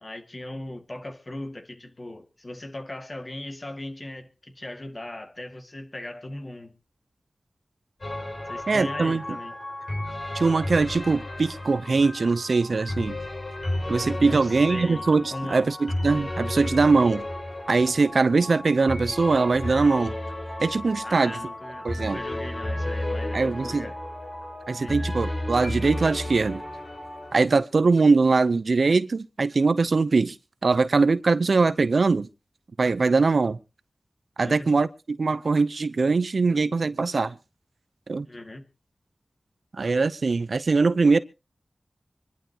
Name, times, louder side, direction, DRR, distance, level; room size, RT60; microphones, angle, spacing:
voice 1, 0.0-6.7 8.5-9.5 14.2-15.1 15.3-15.7 21.0-24.0 24.8-25.1 34.4-34.8 38.3-38.7, left 1 dB, 40° left, 2.1 m, -38 dB
sound 1, 8.0-27.4, left 1 dB, 60° left, 6.3 m, -33 dB
voice 2, 8.7-9.2 10.3-13.2 13.9-17.2 17.7-20.1 20.6-21.4 21.8-22.2 23.3-23.9 24.7-26.6 27.3-30.4 30.6-32.3 32.8-33.6 34.4-37.4 38.1-38.3 39.8-41.2, right 4 dB, 75° right, 0.7 m, -22 dB
25.0 x 11.5 x 3.0 m
cardioid pair, 45°, 0 cm